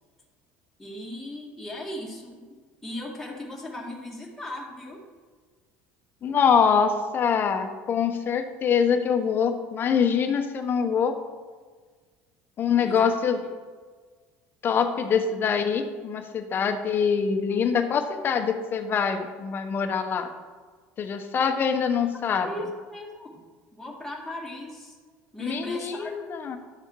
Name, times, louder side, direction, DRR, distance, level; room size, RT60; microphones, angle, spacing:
voice 1, 0.8-5.0 12.8-13.1 17.5-17.6 22.3-23.4 23.7-25.0 25.3-26.1, left 1 dB, 5° left, -3 dB, 2.1 m, -37 dB
voice 2, 6.2-11.2 12.6-13.4 14.6-20.3 21.0-22.5 25.4-26.6, left 6 dB, 40° left, 7 dB, 1.1 m, -24 dB
11.5 x 6.4 x 4.8 m, 1.5 s
supercardioid pair, 115°, 6 cm